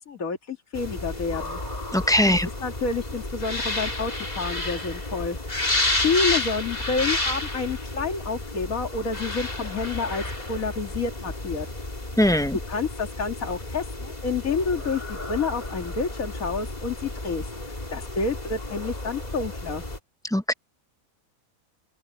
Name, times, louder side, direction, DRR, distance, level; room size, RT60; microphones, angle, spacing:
voice 1, 0.0-1.6 2.0-5.7 6.0-11.7 12.7-19.9, left 4 dB, 75° left, 2.6 m, -29 dB
sound 1, 0.7-20.0, left 2 dB, 30° left, 2.8 m, -31 dB
voice 2, 1.9-2.5 12.2-12.6 20.3-20.5, left 1 dB, 5° left, 0.4 m, -20 dB
open air
omnidirectional pair, 1.5 m